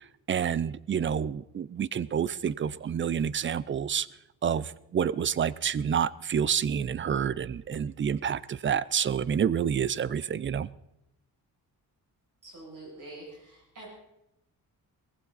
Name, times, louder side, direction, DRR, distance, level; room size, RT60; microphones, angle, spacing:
voice 1, 0.3-4.1 4.4-10.7, right 8 dB, 35° right, 20 dB, 0.5 m, -28 dB
voice 2, 12.4-13.9, right 2 dB, 55° right, -4 dB, 6.9 m, -46 dB
19.0 x 15.0 x 4.1 m, 0.88 s
cardioid pair, 115°, 36 cm